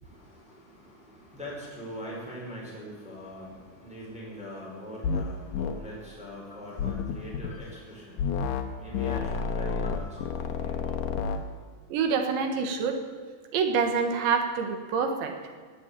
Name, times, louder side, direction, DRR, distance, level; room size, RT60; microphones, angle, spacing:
voice 1, 0.0-11.2, equal, ahead, -5 dB, 4.6 m, -42 dB
sound 1, 5.0-5.3 5.5-5.8 6.8-7.5 8.2-8.7 8.9-11.4, left 6 dB, 85° left, 1.9 m, -30 dB
voice 2, 11.9-13.0 13.5-15.3, right 5 dB, 75° right, 5 dB, 3.7 m, -26 dB
18.0 x 8.8 x 8.7 m, 1.5 s
omnidirectional pair, 5.4 m